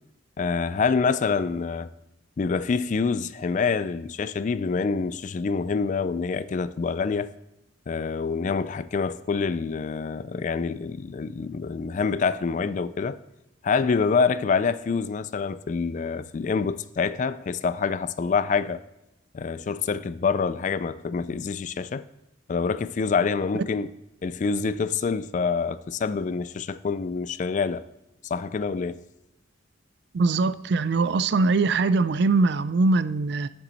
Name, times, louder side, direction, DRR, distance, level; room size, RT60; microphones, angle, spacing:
voice 1, 0.4-1.9 2.4-7.3 7.9-13.2 13.6-18.8 19.3-22.0 22.5-23.9 24.2-27.8 28.3-29.0, left 5 dB, 40° left, 0.3 m, -26 dB
voice 2, 30.1-33.5, right 3 dB, 60° right, 0.4 m, -22 dB
9.7 x 7.2 x 4.1 m
head